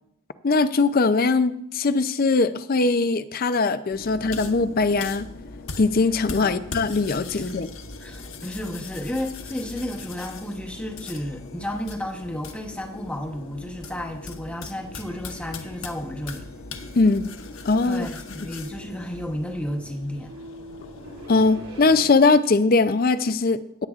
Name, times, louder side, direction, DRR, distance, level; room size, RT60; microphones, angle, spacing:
voice 1, 0.4-5.3 5.8-7.7 16.9-17.3 17.7-18.1 21.3-23.9, left 3 dB, 40° left, 12 dB, 0.5 m, -21 dB
sound 1, 3.9-22.1, left 3 dB, 65° left, 1.1 m, -40 dB
voice 2, 8.0-16.5 17.8-20.3, left 1 dB, 5° left, 2 dB, 0.9 m, -32 dB
sound 2, 15.7-22.6, equal, 70° right, 3.0 m, -46 dB
16.5 x 9.4 x 2.4 m, 0.75 s
head